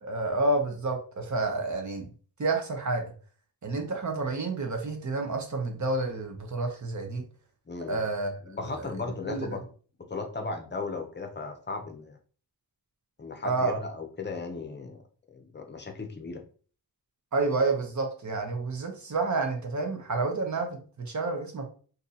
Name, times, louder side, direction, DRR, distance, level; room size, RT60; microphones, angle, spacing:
voice 1, 0.0-2.1 2.4-3.1 3.6-7.2 7.9-8.9 9.2-9.5 13.4-13.8 17.3-21.7, right 3 dB, 50° right, 4 dB, 0.8 m, -29 dB
voice 2, 7.7-8.0 8.4-9.7 10.0-12.2 13.2-15.0 15.3-16.4, left 3 dB, 30° left, 4 dB, 0.6 m, -36 dB
2.6 x 2.6 x 4.0 m, 0.41 s
wide cardioid pair, 115°, 39 cm